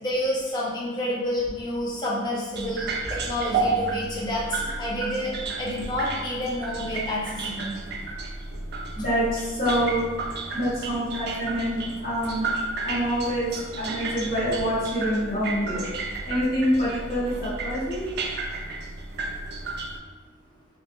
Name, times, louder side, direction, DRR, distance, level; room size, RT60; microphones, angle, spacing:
voice 1, 0.0-5.3 5.6-7.7, left 1 dB, 20° left, -5 dB, 0.5 m, -29 dB
sound 1, 2.5-20.0, right 3 dB, 50° right, 0.3 m, -32 dB
voice 2, 8.9-10.0 10.5-12.5 12.8-15.9 16.2-18.1, equal, 40° left, -16 dB, 1.2 m, -26 dB
2.5 x 2.1 x 2.9 m, 1.3 s
head